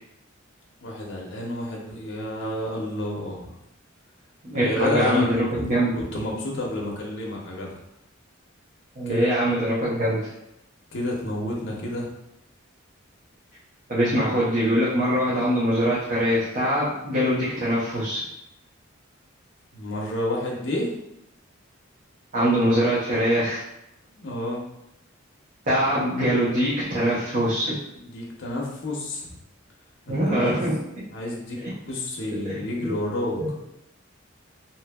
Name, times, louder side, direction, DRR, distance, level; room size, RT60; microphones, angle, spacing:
voice 1, 0.8-3.5 4.5-5.7 5.9-7.8 9.1-9.3 10.9-12.1 19.7-20.9 24.1-24.6 28.0-29.4 30.1-30.7 31.1-31.6 31.9-33.4, left 1 dB, 65° left, -3 dB, 0.6 m, -30 dB
voice 2, 4.5-5.9 9.0-10.3 13.9-18.2 22.3-23.6 25.7-27.7 30.1-30.7 31.6-31.7 32.4-32.9 33.4-33.5, equal, 45° right, -9 dB, 0.7 m, -23 dB
2.8 x 2.6 x 2.2 m, 0.82 s
head